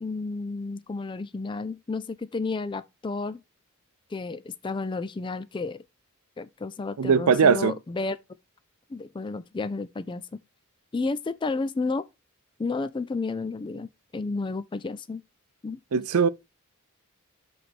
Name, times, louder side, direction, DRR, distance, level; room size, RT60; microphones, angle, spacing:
voice 1, 0.0-3.4 4.1-5.8 6.4-8.2 8.9-10.4 10.9-12.0 12.6-15.2 15.6-16.0, left 3 dB, 20° left, 0.3 m, -32 dB
voice 2, 7.0-7.8 15.9-16.3, right 6 dB, 75° right, 0.5 m, -20 dB
7.8 x 3.3 x 5.8 m
head